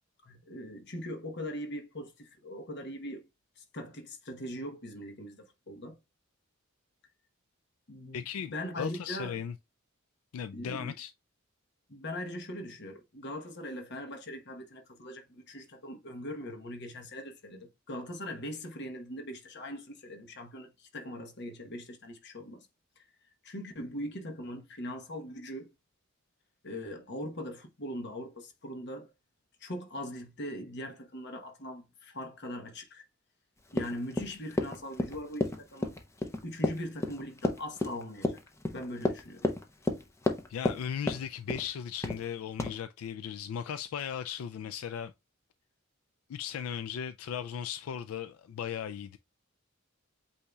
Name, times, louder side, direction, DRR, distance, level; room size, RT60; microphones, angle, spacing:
voice 1, 0.2-3.2 3.6-6.0 7.9-9.4 10.5-10.9 11.9-22.7 23.4-25.7 26.6-29.1 29.6-33.0 33.7-35.9 36.4-38.4 38.7-39.5, left 1 dB, 55° left, 1.0 m, -41 dB
voice 2, 8.1-9.6 10.3-11.1 40.5-45.1 46.3-49.2, left 8 dB, 85° left, 0.3 m, -37 dB
Run, 33.7-40.8 41.1-41.7 42.0-42.3 42.6-42.7, left 2 dB, 15° left, 0.6 m, -31 dB
8.2 x 2.8 x 2.3 m
head